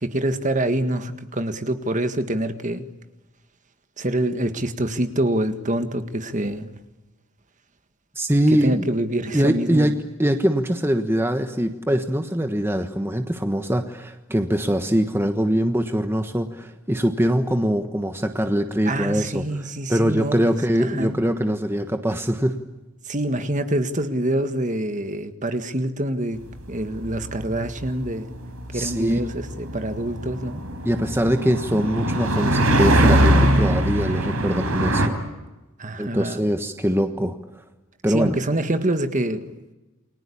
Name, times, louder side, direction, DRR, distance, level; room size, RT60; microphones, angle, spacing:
voice 1, 0.0-2.9 4.0-6.7 8.5-9.9 18.9-21.2 23.1-26.4 26.7-28.3 28.7-30.6 35.8-36.4 38.1-39.4, right 1 dB, 35° right, 8 dB, 1.7 m, -26 dB
voice 2, 8.1-8.8 9.3-22.5 28.7-29.2 30.8-35.0 36.0-37.4 38.0-38.3, equal, 10° right, 6 dB, 1.3 m, -23 dB
sound 1, 26.6-35.1, right 1 dB, 80° right, 4.3 m, -22 dB
29.5 x 22.5 x 8.6 m, 1.1 s
head